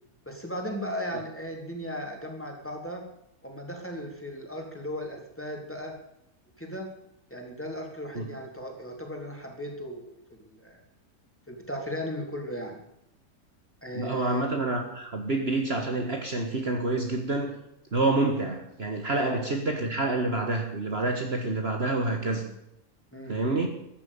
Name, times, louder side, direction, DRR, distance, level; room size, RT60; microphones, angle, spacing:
voice 1, 0.3-3.0 3.4-5.9 6.6-6.9 7.3-10.8 11.5-12.8 13.8-14.5 18.1-18.3 19.2-19.4 23.1-23.4, equal, 10° left, 1 dB, 3.8 m, -36 dB
voice 2, 13.9-17.6 17.9-22.4 23.3-23.7, right 2 dB, 45° right, 3 dB, 1.9 m, -28 dB
14.5 x 10.5 x 8.5 m, 0.82 s
omnidirectional pair, 1.6 m